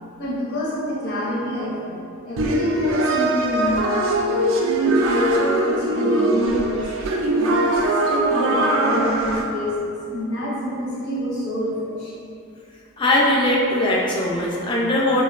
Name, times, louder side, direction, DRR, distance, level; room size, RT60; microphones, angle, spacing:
voice 1, 0.2-3.9 4.6-12.2, equal, 70° left, -8 dB, 0.7 m, -26 dB
sound 1, 2.4-9.4, right 1 dB, 60° right, 0.3 m, -21 dB
voice 2, 13.0-15.2, left 1 dB, 20° left, -3 dB, 0.3 m, -20 dB
4.2 x 2.1 x 2.3 m, 2.6 s
head